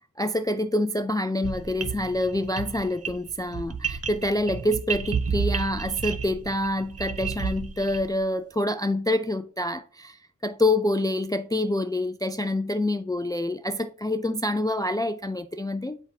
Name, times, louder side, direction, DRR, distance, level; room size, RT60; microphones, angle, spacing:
voice 1, 0.2-16.0, left 1 dB, 10° left, 0.3 m, -27 dB
sound 1, 1.4-8.2, right 6 dB, 50° right, 0.6 m, -31 dB
8.0 x 4.6 x 2.7 m
wide cardioid pair, 65°, 32 cm